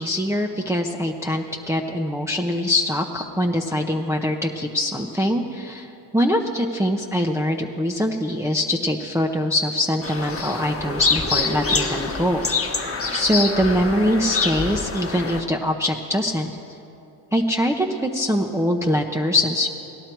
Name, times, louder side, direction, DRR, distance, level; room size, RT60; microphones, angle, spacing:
voice 1, 0.0-12.7 13.1-16.5 17.3-19.7, left 1 dB, 5° right, 1 dB, 0.7 m, -23 dB
sound 1, 10.0-15.4, left 4 dB, 30° left, 1.2 m, -25 dB
18.0 x 11.5 x 4.6 m, 2.9 s
cardioid pair, 70°, 48 cm